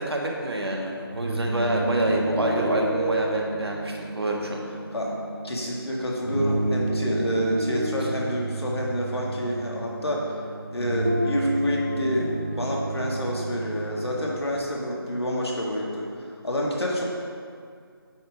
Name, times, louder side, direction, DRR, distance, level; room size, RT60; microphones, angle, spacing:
voice 1, 0.0-4.6, right 1 dB, 80° right, 0 dB, 1.4 m, -27 dB
sound 1, 1.0-14.4, right 1 dB, 30° right, 0.5 m, -30 dB
voice 2, 5.4-10.4 10.7-17.0, equal, 90° left, -3 dB, 1.9 m, -28 dB
8.5 x 3.7 x 5.2 m, 2.2 s
figure-of-eight pair, 175°, 13 cm